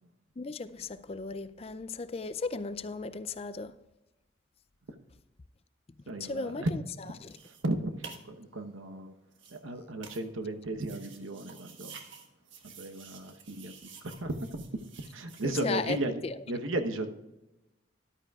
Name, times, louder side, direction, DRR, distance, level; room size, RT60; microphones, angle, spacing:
voice 1, 0.4-3.7 6.2-6.8 7.2-7.4 15.4-16.3, left 3 dB, 30° left, 0.4 m, -36 dB
voice 2, 6.1-6.7 7.4-9.1 9.5-12.0 12.6-13.7 14.0-14.6 15.1-16.2 16.5-17.2, right 1 dB, 90° right, 1.0 m, -35 dB
sound 1, 7.1-15.5, right 6 dB, 70° right, 1.4 m, -51 dB
13.5 x 11.5 x 2.4 m
head